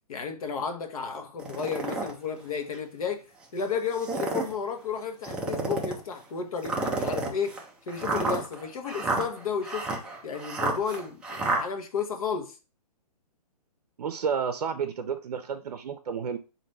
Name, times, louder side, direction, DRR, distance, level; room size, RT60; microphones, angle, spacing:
voice 1, 0.1-3.2 3.5-7.6 7.9-9.9 10.2-12.5, left 6 dB, 60° left, 1.0 m, -32 dB
sound 1, 1.4-2.1 2.7-2.8 3.9-4.5 5.2-6.0 6.6-11.6, right 2 dB, 5° right, 0.3 m, -30 dB
voice 2, 14.0-16.4, right 6 dB, 75° right, 0.5 m, -31 dB
4.0 x 2.6 x 3.2 m
hypercardioid pair, 145°, 20 cm